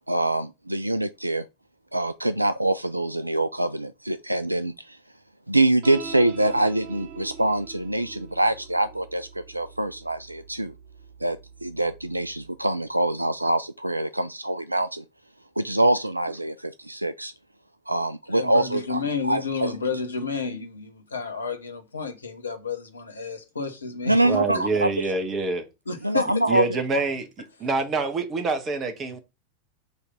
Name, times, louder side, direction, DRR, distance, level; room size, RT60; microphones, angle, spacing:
voice 1, 0.1-1.4 1.9-5.0 5.5-10.7 11.2-15.0 15.6-17.3 17.9-19.7 24.0-24.9 26.0-27.0, right 1 dB, 85° right, 0.3 m, -25 dB
sound 1, 5.8-12.5, right 5 dB, 45° right, 1.1 m, -44 dB
voice 2, 18.3-24.2 24.5-24.6 25.9-26.3, left 5 dB, 75° left, 1.1 m, -31 dB
voice 3, 24.2-25.6 26.5-27.3 27.6-29.2, right 3 dB, 25° right, 1.3 m, -26 dB
5.5 x 3.3 x 5.4 m
figure-of-eight pair, 90°, 0 cm